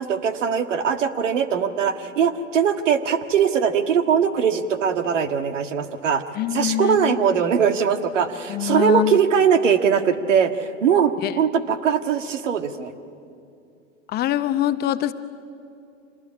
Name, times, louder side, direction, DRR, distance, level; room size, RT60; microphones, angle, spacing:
voice 1, 0.0-6.2 6.5-12.9, right 7 dB, 70° right, 9 dB, 1.8 m, -21 dB
voice 2, 6.4-7.4 8.5-9.2 11.2-11.3 14.1-15.1, left 13 dB, 25° left, 11 dB, 0.7 m, -24 dB
26.0 x 19.5 x 9.7 m, 2.5 s
hypercardioid pair, 115°, 39 cm